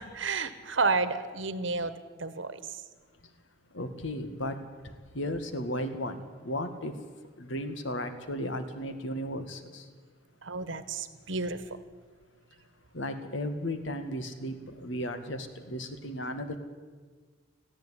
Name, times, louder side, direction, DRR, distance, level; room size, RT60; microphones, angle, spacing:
voice 1, 0.0-1.9 2.2-2.8 10.4-11.8, right 4 dB, 75° right, 12 dB, 1.5 m, -31 dB
voice 2, 3.7-4.6 5.1-6.9 7.4-9.8 12.9-16.6, equal, 75° left, 8 dB, 2.0 m, -35 dB
19.0 x 15.0 x 10.0 m, 1.5 s
head